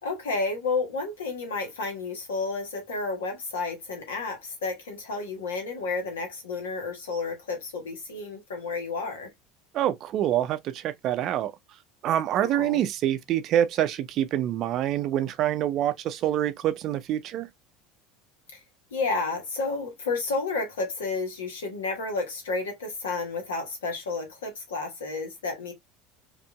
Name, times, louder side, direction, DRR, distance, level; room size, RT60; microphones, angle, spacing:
voice 1, 0.0-9.3 12.4-12.8 18.5-18.6 18.9-25.7, left 3 dB, 70° left, 1.4 m, -31 dB
voice 2, 9.7-11.5 12.0-17.5, right 11 dB, 45° right, 0.5 m, -26 dB
5.0 x 2.7 x 2.3 m
figure-of-eight pair, 70°, 0 cm